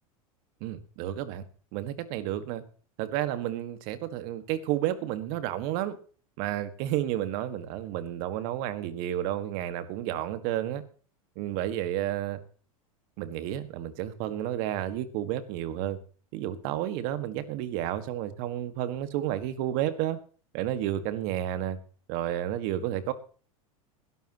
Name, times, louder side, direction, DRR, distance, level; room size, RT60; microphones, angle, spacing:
voice 1, 0.6-1.4 1.7-2.6 3.0-6.0 6.4-10.8 11.4-12.4 13.2-16.0 16.3-20.2 20.5-21.8 22.1-23.1, right 12 dB, 55° right, 11 dB, 1.8 m, -31 dB
20.5 x 12.0 x 3.0 m, 0.40 s
hypercardioid pair, 95°, 18 cm